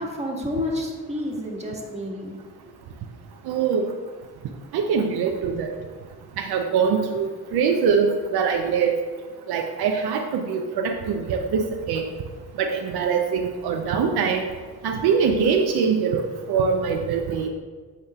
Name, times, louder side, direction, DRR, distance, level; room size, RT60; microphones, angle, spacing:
voice 1, 0.0-2.3 2.7-2.8, left 1 dB, 15° right, -1 dB, 1.6 m, -30 dB
voice 2, 3.5-3.9 4.7-5.7 6.4-9.0 9.5-12.1 12.6-14.4 14.8-16.2 16.5-17.5, right 6 dB, 70° right, 3 dB, 0.7 m, -23 dB
8.6 x 5.2 x 2.4 m, 1.5 s
supercardioid pair, 55°, 40 cm